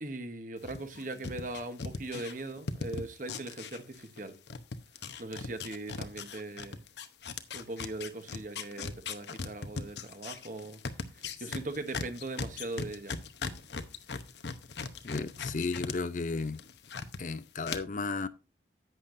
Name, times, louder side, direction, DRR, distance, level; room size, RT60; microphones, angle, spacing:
voice 1, 0.0-4.4 5.2-6.8 7.5-10.8 11.1-13.2, right 2 dB, 45° right, 1.0 m, -40 dB
sound 1, 0.6-4.2 4.5-15.9 16.3-17.2 17.6-17.8, left 4 dB, 70° left, 0.8 m, -38 dB
voice 2, 15.0-16.6 17.2-18.3, left 3 dB, 45° left, 0.5 m, -34 dB
11.0 x 8.4 x 2.6 m
head